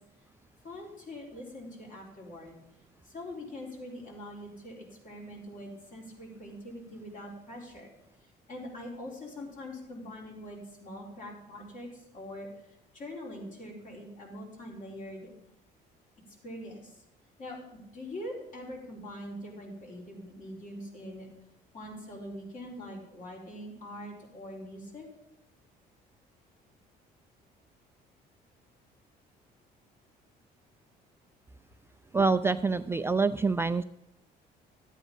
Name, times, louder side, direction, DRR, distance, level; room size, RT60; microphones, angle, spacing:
voice 1, 0.6-2.6 3.0-7.9 8.2-15.3 16.4-17.0 17.4-21.3 21.7-25.1, left 1 dB, 50° left, -1 dB, 4.2 m, -43 dB
voice 2, 32.1-33.8, right 4 dB, 15° right, 9 dB, 0.3 m, -26 dB
12.5 x 8.4 x 5.3 m, 0.83 s
cardioid pair, 110°, 17 cm